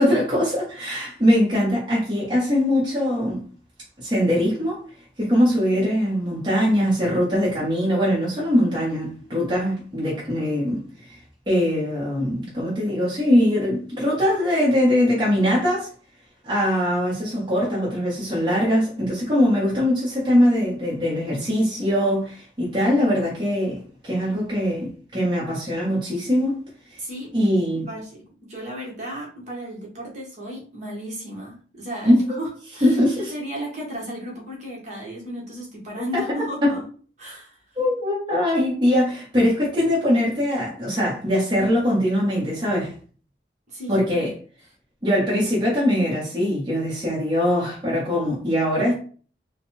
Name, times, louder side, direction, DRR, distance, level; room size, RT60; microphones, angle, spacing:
voice 1, 0.0-3.4 4.0-4.8 5.2-11.1 11.5-15.9 16.4-26.6 26.9-27.0 27.3-27.9 32.0-32.3 32.8-33.3 36.1-36.2 36.6-36.7 37.8-42.9 43.9-44.3 45.0-49.0, equal, 25° right, 1.3 m, -22 dB
voice 2, 27.0-27.3 27.9-33.0 33.3-36.8 37.2-37.6 43.7-44.3, equal, 40° right, 1.5 m, -34 dB
3.9 x 2.3 x 4.2 m
head